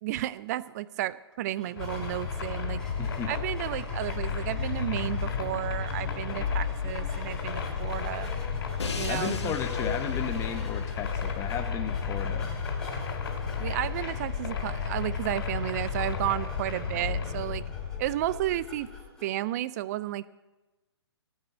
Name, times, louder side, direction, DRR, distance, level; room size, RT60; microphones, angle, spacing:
voice 1, 0.0-2.8 3.3-8.3 9.0-9.6 13.6-17.7 18.0-18.9 19.2-20.3, right 14 dB, 35° right, 18 dB, 0.5 m, -32 dB
sound 1, 1.6-19.4, left 2 dB, 5° left, 2.9 m, -48 dB
sound 2, 1.8-19.1, left 6 dB, 60° left, 3.1 m, -32 dB
voice 2, 3.0-3.3 9.0-12.5, left 7 dB, 20° left, 7 dB, 1.3 m, -34 dB
Crash cymbal, 8.8-14.8, left 4 dB, 75° left, 1.3 m, -43 dB
17.0 x 6.3 x 8.2 m, 1.1 s
hypercardioid pair, 130°, 14 cm